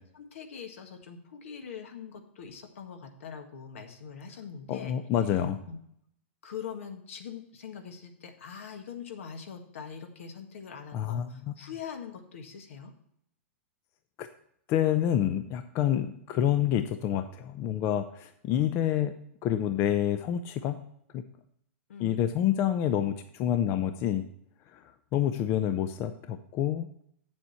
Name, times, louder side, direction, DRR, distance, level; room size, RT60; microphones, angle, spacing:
voice 1, 0.1-5.0 5.7-5.8 6.4-12.9 21.9-22.2, left 7 dB, 75° left, 5 dB, 1.7 m, -43 dB
voice 2, 4.7-5.6 10.9-11.6 14.2-14.3 14.7-19.1 19.4-20.7 21.1-21.2 22.0-24.2 24.7-24.8 25.1-27.0, left 10 dB, 35° left, 9 dB, 0.6 m, -28 dB
8.2 x 7.4 x 4.2 m, 0.70 s
hypercardioid pair, 130°, 7 cm